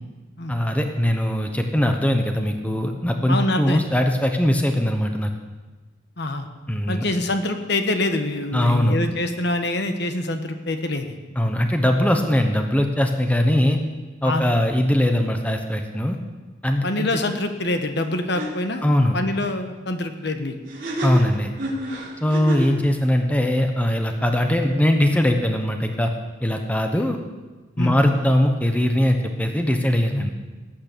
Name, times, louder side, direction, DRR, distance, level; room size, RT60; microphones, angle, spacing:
voice 1, 0.5-5.3 6.7-7.0 8.5-9.0 11.4-13.8 14.2-16.2 16.6-17.2 18.8-19.2 21.0-21.5 22.2-26.1 26.4-27.2 27.8-30.3, left 1 dB, 5° left, 4 dB, 1.0 m, -21 dB
voice 2, 3.3-3.9 6.2-6.5 6.9-11.2 14.2-14.5 16.8-18.8 19.1-20.5 22.7-22.9 27.0-27.1 27.8-27.9, left 2 dB, 55° left, 7 dB, 1.2 m, -25 dB
sound 1, 18.0-18.1 18.3-18.5 20.7-22.8, right 1 dB, 45° right, 3.9 m, -29 dB
18.0 x 8.7 x 6.8 m, 1.3 s
head